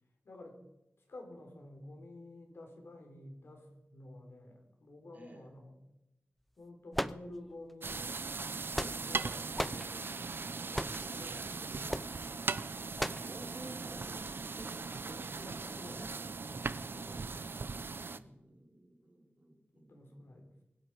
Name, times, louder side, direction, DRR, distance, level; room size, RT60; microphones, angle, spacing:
voice 1, 0.2-0.6 1.1-5.8 6.6-8.2 8.8-9.9 10.8-12.2 15.0-16.0 16.4-17.5 18.1-18.5 19.8-20.5, left 1 dB, 70° left, 3 dB, 3.8 m, -51 dB
voice 2, 5.1-5.5 9.4-9.6 10.6-11.9 13.2-16.1 16.9-17.7 18.1-20.4, right 1 dB, 40° right, 0 dB, 4.2 m, -54 dB
sound 1, 6.9-7.7 8.4-9.2 9.6-9.9 10.7-11.1 11.9-12.1 13.0-13.3, equal, ahead, 0.5 m, -36 dB
sound 2, 7.8-18.2, right 4 dB, 60° right, 0.7 m, -39 dB
24.5 x 10.5 x 4.8 m, 0.90 s
wide cardioid pair, 110°, 4 cm